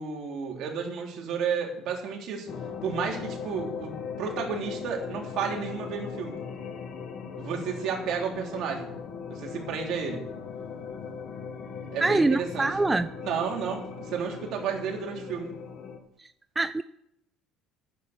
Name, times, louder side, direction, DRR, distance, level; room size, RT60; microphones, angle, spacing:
voice 1, 0.0-2.5 2.8-3.9 4.2-6.4 7.3-8.9 9.3-10.3 11.9-12.7 13.2-15.5, right 6 dB, 65° right, 3.2 m, -32 dB
sound 1, 2.5-16.0, left 6 dB, 55° left, 1.6 m, -39 dB
voice 2, 12.0-13.1 16.2-16.3 16.6-16.8, right 3 dB, 15° right, 0.4 m, -24 dB
10.5 x 8.4 x 7.1 m
supercardioid pair, 90°, 0 cm